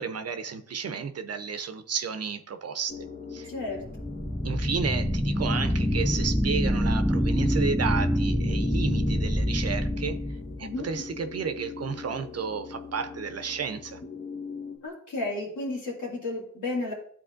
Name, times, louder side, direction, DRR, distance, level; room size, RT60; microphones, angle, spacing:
voice 1, 0.0-3.0 3.3-3.5 4.4-10.2 10.6-14.0, right 6 dB, 55° right, 10 dB, 0.6 m, -32 dB
sound 1, 2.9-14.8, left 5 dB, 40° left, 1.1 m, -40 dB
voice 2, 3.4-3.8 10.6-10.9 14.8-16.9, left 2 dB, 85° left, -3 dB, 2.3 m, -32 dB
sound 2, 3.8-10.8, equal, ahead, 0.3 m, -26 dB
11.5 x 4.1 x 2.5 m, 0.62 s
cardioid pair, 65°, 29 cm